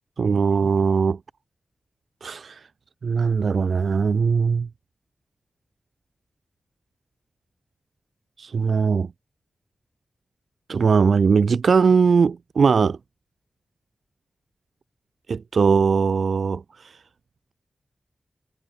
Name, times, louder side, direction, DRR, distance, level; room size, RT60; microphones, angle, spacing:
voice 1, 0.2-1.2 2.2-2.6 3.0-4.7 8.4-9.1 10.7-13.0 15.3-16.9, right 5 dB, 70° right, 6.9 m, -20 dB
wide cardioid pair, 100°, 0 cm